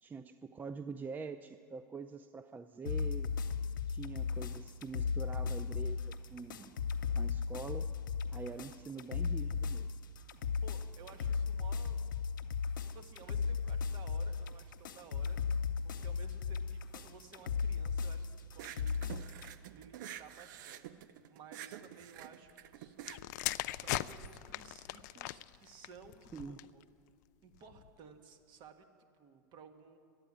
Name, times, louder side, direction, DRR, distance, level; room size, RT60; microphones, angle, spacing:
voice 1, 0.0-3.3 3.9-6.8 7.1-7.9 8.3-9.9 26.3-26.6, right 4 dB, 15° right, 10 dB, 0.4 m, -45 dB
sound 1, 2.9-19.5, left 5 dB, 80° left, 0.8 m, -36 dB
voice 2, 10.6-12.1 12.9-19.0 19.7-23.5 23.8-26.8 27.4-30.0, right 6 dB, 45° right, 6 dB, 1.5 m, -56 dB
sound 2, 18.5-24.3, right 11 dB, 70° right, 0.7 m, -48 dB
sound 3, 23.0-26.8 27.6-27.9, left 16 dB, 65° left, 0.4 m, -40 dB
12.0 x 8.9 x 9.9 m, 2.2 s
hypercardioid pair, 105°, 10 cm